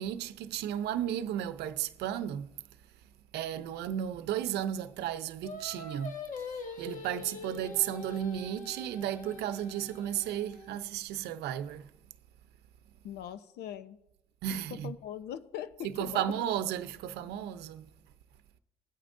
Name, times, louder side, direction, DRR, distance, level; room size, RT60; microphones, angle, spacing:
voice 1, 0.0-2.5 3.3-6.2 6.8-11.9 14.4-14.9 15.8-17.9, right 10 dB, 80° right, 0.7 m, -34 dB
Singing, 5.4-10.8, left 2 dB, 50° left, 1.9 m, -43 dB
voice 2, 13.0-14.0 14.5-16.3, left 10 dB, 75° left, 0.8 m, -41 dB
20.5 x 8.8 x 2.6 m
cardioid pair, 110°, 17 cm